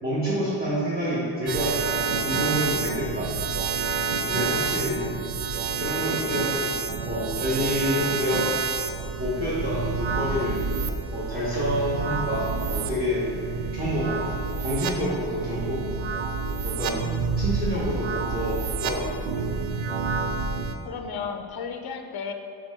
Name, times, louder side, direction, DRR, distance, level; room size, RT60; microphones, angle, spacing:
voice 1, 0.0-3.3 4.2-5.0 5.8-6.7 7.0-8.4 9.2-10.6 11.1-13.3 13.7-14.2 14.6-15.8 16.6-17.0 17.4-19.1, equal, 20° right, -10 dB, 1.3 m, -28 dB
sound 1, 1.5-20.8, right 4 dB, 85° right, 0.6 m, -29 dB
voice 2, 20.8-22.3, left 6 dB, 55° left, 5 dB, 0.5 m, -34 dB
5.0 x 4.3 x 5.4 m, 2.5 s
wide cardioid pair, 120°, 47 cm